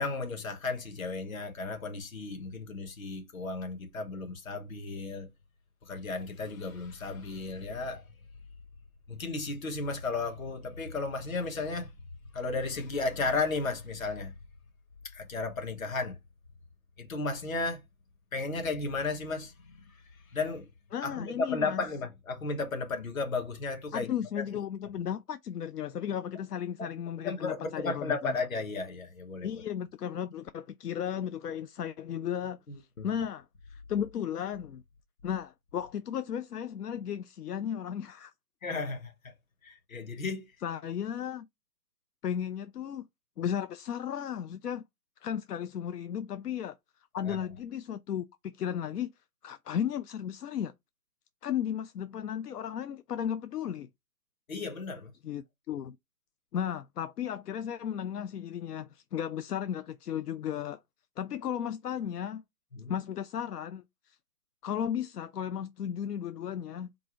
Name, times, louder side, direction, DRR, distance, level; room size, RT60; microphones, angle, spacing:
voice 1, 0.0-5.3 5.8-8.1 9.1-11.9 12.3-14.3 15.1-16.2 17.0-17.8 18.3-19.9 20.3-20.7 21.0-24.1 24.4-24.5 26.8-26.9 27.2-29.5 33.0-33.1 38.6-39.3 39.6-40.5 47.2-47.4 54.5-55.1 62.7-62.9, left 3 dB, 60° left, 1.2 m, -34 dB
voice 2, 20.9-21.8 23.9-28.4 29.4-34.8 35.2-38.3 40.6-41.5 42.2-43.1 43.4-44.8 45.2-46.8 47.1-49.1 49.4-50.7 51.4-53.9 55.2-56.0 56.5-60.8 61.2-62.4 62.9-64.2 64.6-66.9, left 9 dB, 85° left, 0.5 m, -35 dB
4.4 x 2.6 x 3.0 m
hypercardioid pair, 170°, 46 cm